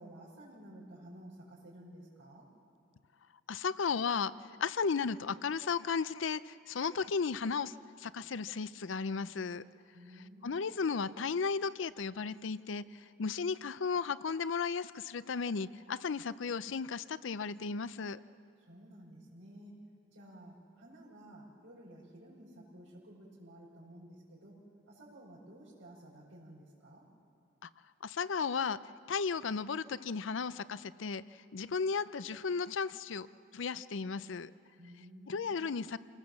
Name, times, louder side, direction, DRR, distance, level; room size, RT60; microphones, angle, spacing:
voice 1, 0.0-2.5 9.9-10.7 18.6-19.7 20.1-24.6 24.9-27.1 34.8-35.6, right 1 dB, 75° right, -8 dB, 5.2 m, -53 dB
voice 2, 3.5-4.3 4.6-9.6 10.4-12.8 13.2-18.2 28.0-28.8 29.1-31.2 31.5-33.3 33.5-34.5 35.3-36.0, left 5 dB, 80° left, 16 dB, 0.5 m, -34 dB
27.5 x 19.0 x 7.3 m, 2.4 s
head